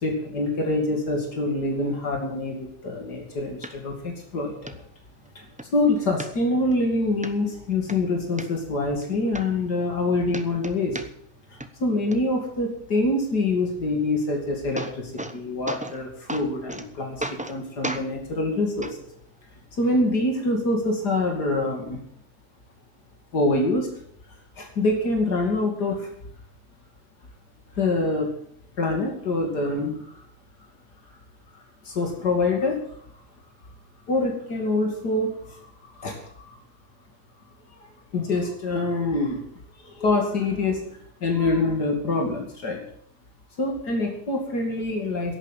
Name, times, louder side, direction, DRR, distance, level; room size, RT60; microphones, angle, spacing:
voice 1, 0.0-4.7 5.3-5.4 5.7-11.0 11.5-19.0 19.8-22.0 23.3-23.9 24.6-26.1 27.7-28.3 28.8-30.0 31.8-32.9 34.1-35.6 35.9-36.5 37.8-39.4 39.8-40.8 41.2-42.8 43.6-45.4, left 2 dB, 85° left, 2 dB, 3.1 m, -25 dB
sound 1, 3.6-3.7 4.2-4.3 4.7-4.8 5.2-5.7 6.2-6.8 7.2-7.3 7.7-8.5 9.0-9.1 9.3-10.0 10.3-11.4 11.6-12.2 14.2-14.3 14.5-15.4 15.7-16.0 16.3-16.9 17.2-17.6 17.8-18.1 18.8-18.9 19.8-19.9, right 1 dB, 10° right, 0.5 m, -34 dB
11.5 x 9.2 x 9.1 m, 0.66 s
omnidirectional pair, 1.7 m